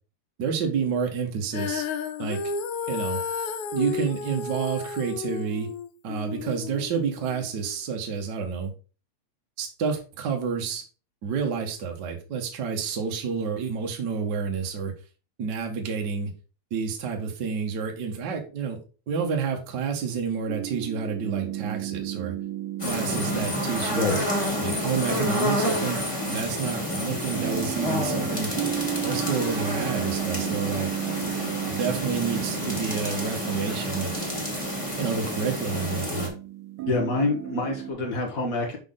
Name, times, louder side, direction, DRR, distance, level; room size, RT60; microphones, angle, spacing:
voice 1, 0.4-1.8 2.2-2.4 2.9-3.2 3.7-5.7 6.0-8.7 9.6-10.8 11.2-14.9 15.4-16.3 16.7-18.8 19.1-22.3 22.8-24.2 24.6-28.5 29.0-30.9 31.7-34.2 35.0-36.3, right 6 dB, 50° right, 2 dB, 1.3 m, -29 dB
Female singing, 1.5-7.8, left 5 dB, 80° left, 2.1 m, -32 dB
sound 1, 20.5-37.9, right 13 dB, 75° right, 2.2 m, -34 dB
sound 2, 22.8-36.3, left 1 dB, 15° left, 1.7 m, -29 dB
voice 2, 36.9-38.8, left 2 dB, 55° left, 2 dB, 0.9 m, -26 dB
6.0 x 5.2 x 3.7 m, 0.35 s
omnidirectional pair, 3.5 m